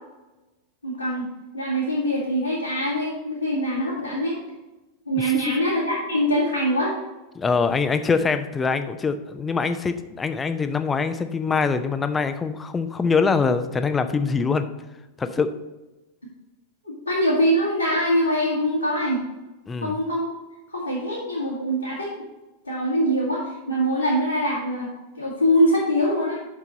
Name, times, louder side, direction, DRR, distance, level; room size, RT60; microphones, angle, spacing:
voice 1, 0.8-4.4 5.1-7.0 16.8-19.2 19.8-20.3 20.7-22.1 22.6-26.5, equal, 85° left, -8 dB, 2.0 m, -23 dB
voice 2, 5.2-5.5 7.4-14.6 15.2-15.5 19.7-20.0, left 5 dB, 15° left, 10 dB, 0.6 m, -23 dB
6.7 x 5.9 x 5.3 m, 1.1 s
figure-of-eight pair, 90°, 0 cm